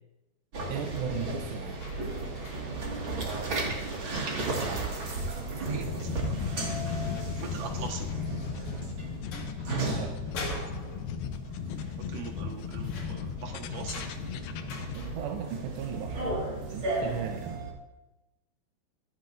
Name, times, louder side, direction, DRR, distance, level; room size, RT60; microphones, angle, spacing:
sound 1, 0.5-17.7, right 2 dB, 40° right, 1.9 m, -35 dB
voice 1, 0.7-1.8 9.8-10.2 14.9-16.3 16.7-17.7, right 6 dB, 90° right, 3 dB, 3.0 m, -36 dB
sound 2, 0.9-4.8 5.8-5.9 6.3-6.4 6.9-8.9 9.2-9.7 10.1-11.6 11.9-12.0 12.2-15.5 16.6-16.7, left 1 dB, 50° left, 3.0 m, -45 dB
voice 2, 3.2-4.8 5.5-6.4 7.3-8.1 12.1-14.0, right 5 dB, 65° right, 2 dB, 2.6 m, -42 dB
sound 3, 5.8-15.0, left 7 dB, 75° left, 2.2 m, -36 dB
25.5 x 9.6 x 2.6 m, 1.0 s
omnidirectional pair, 4.8 m